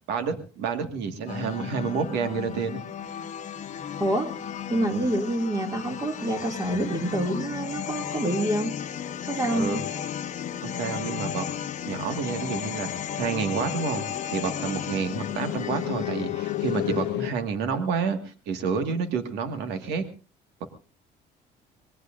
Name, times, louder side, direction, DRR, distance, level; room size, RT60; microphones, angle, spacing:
voice 1, 0.1-2.8 9.5-9.8 10.6-11.4 11.9-20.0 20.6-20.7, right 5 dB, 90° right, 7 dB, 1.8 m, -29 dB
sound 1, 1.3-17.1, left 8 dB, 45° left, 1.0 m, -35 dB
voice 2, 4.7-8.7 9.3-9.8, right 1 dB, 20° right, 3 dB, 2.4 m, -27 dB
sound 2, 7.4-17.3, left 17 dB, 80° left, 0.7 m, -36 dB
23.5 x 19.5 x 2.6 m, 0.34 s
cardioid pair, 110°, 17 cm